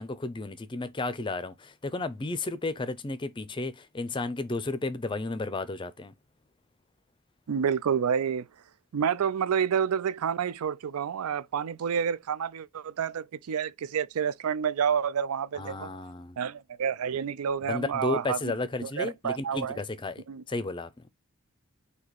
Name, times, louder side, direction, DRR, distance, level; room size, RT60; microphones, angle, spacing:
voice 1, 0.0-6.1 15.5-16.4 17.7-20.9, left 2 dB, 20° left, 0.5 m, -33 dB
voice 2, 7.5-8.5 8.9-15.9 16.4-18.5 18.8-19.8 20.3-20.4, right 7 dB, 85° right, 0.4 m, -29 dB
4.1 x 2.8 x 4.6 m
head